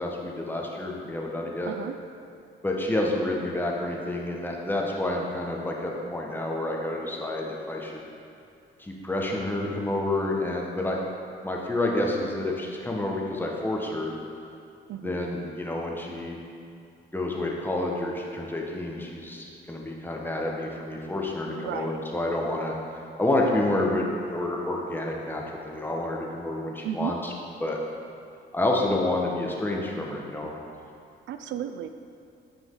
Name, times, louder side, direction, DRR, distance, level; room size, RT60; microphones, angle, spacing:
voice 1, 0.0-1.7 2.6-8.0 8.8-11.0 11.4-14.1 15.0-16.4 17.1-22.7 23.2-27.3 27.6-27.8 28.5-30.5, left 1 dB, 10° left, -1 dB, 1.2 m, -29 dB
voice 2, 14.9-15.3 21.4-22.0 26.8-27.2 31.3-31.9, right 10 dB, 70° right, 8 dB, 0.4 m, -34 dB
9.4 x 5.1 x 3.8 m, 2.6 s
cardioid pair, 90°, 20 cm